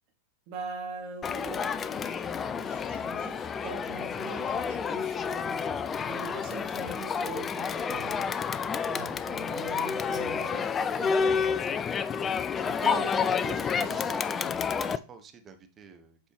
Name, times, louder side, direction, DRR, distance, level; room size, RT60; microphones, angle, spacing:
voice 1, 0.5-8.2 8.9-10.6 10.9-11.9 12.6-14.0, right 4 dB, 45° right, 3 dB, 1.3 m, -42 dB
Crowd, 1.2-15.0, left 6 dB, 20° left, 0.3 m, -30 dB
voice 2, 12.5-16.2, right 5 dB, 25° right, 7 dB, 1.0 m, -49 dB
7.6 x 4.2 x 3.3 m, 0.34 s
figure-of-eight pair, 90°, 0 cm